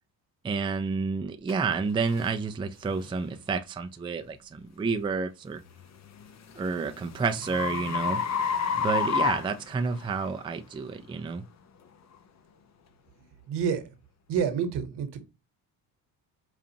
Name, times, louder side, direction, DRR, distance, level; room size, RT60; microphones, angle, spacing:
voice 1, 0.4-5.6 6.5-8.2 8.7-11.4, right 4 dB, 10° right, 0.4 m, -30 dB
sound 1, 1.5-1.6 2.2-2.4 3.0-3.2 5.8-10.3, left 6 dB, 40° left, 0.7 m, -30 dB
voice 2, 13.5-13.9 14.3-15.2, right 7 dB, 65° right, 1.2 m, -28 dB
5.0 x 2.4 x 2.8 m
supercardioid pair, 75°, 43 cm